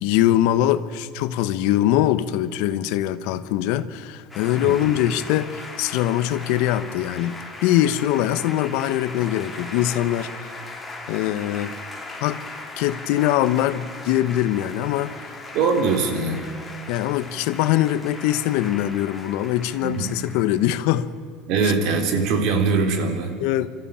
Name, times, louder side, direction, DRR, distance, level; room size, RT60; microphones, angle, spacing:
voice 1, 0.0-10.5 11.1-11.7 12.2-12.4 12.8-15.3 16.9-21.1 21.6-21.7 23.4-23.7, left 13 dB, 75° left, 13 dB, 1.0 m, -22 dB
sound 1, 4.3-20.8, left 2 dB, 10° left, 3.2 m, -38 dB
voice 2, 4.6-4.9 15.5-16.4 19.8-20.1 21.5-23.3, right 4 dB, 65° right, 5 dB, 3.4 m, -22 dB
25.5 x 14.0 x 8.7 m, 2.2 s
supercardioid pair, 130°, 0 cm